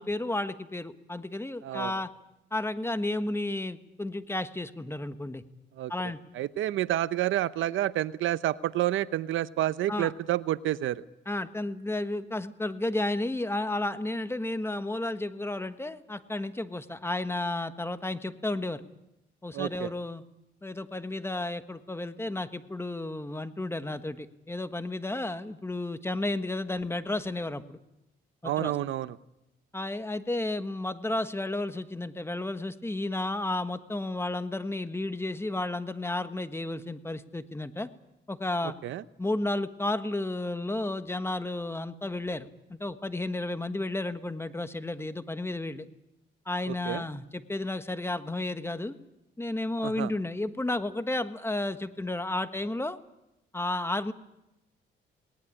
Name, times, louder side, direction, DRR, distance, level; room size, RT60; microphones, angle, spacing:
voice 1, 0.0-2.1 2.5-5.4 5.9-6.2 9.9-10.1 11.3-18.9 19.4-20.2 20.6-27.8 28.4-28.7 29.7-37.9 38.3-38.8 39.2-45.9 46.5-49.0 49.4-53.0 53.5-54.1, left 2 dB, 10° left, 11 dB, 1.3 m, -32 dB
voice 2, 1.6-1.9 5.8-5.9 6.3-11.0 19.5-19.9 28.4-29.2 38.8-39.0 46.7-47.0 49.8-50.1, right 13 dB, 80° right, 16 dB, 0.7 m, -29 dB
19.0 x 19.0 x 9.8 m, 0.91 s
cardioid pair, 90°, 20 cm